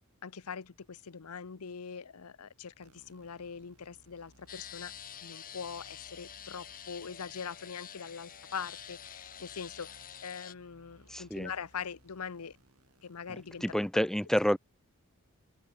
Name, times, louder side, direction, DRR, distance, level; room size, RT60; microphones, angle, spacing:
voice 1, 0.2-4.9 5.2-12.6 13.0-14.1, left 6 dB, 80° left, 0.8 m, -42 dB
sound 1, 2.8-13.9, right 1 dB, 80° right, 6.8 m, -64 dB
sound 2, 4.5-10.5, left 9 dB, 40° left, 1.8 m, -47 dB
voice 2, 11.1-11.5 13.6-14.6, equal, ahead, 0.6 m, -28 dB
head